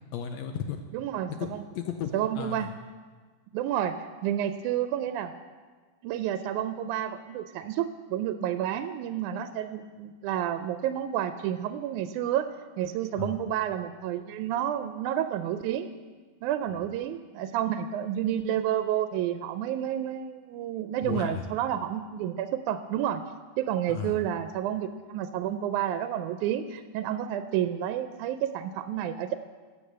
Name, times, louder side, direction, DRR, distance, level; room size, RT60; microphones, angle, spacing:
voice 1, 0.1-0.8 1.4-2.7 13.2-13.4 21.0-21.4 23.9-24.2, left 8 dB, 75° left, 6 dB, 1.7 m, -34 dB
voice 2, 0.9-1.6 2.1-2.7 3.5-4.0 4.2-5.3 6.0-12.5 12.8-15.9 16.4-23.2 23.6-29.4, right 10 dB, 85° right, 9 dB, 2.0 m, -30 dB
13.0 x 8.3 x 6.7 m, 1.4 s
omnidirectional pair, 3.5 m